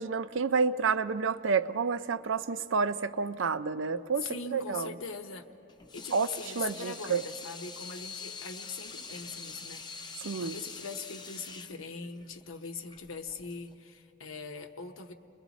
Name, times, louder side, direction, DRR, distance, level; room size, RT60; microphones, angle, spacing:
voice 1, 0.0-5.0 6.1-7.2 10.2-10.6, right 5 dB, 70° right, 13 dB, 0.5 m, -30 dB
voice 2, 4.2-5.5 5.9-15.1, left 4 dB, 80° left, 5 dB, 1.0 m, -41 dB
Water tap faucet / Sink (filling or washing), 5.7-13.7, left 5 dB, 20° left, 0.5 m, -45 dB
29.5 x 21.5 x 4.1 m, 2.8 s
head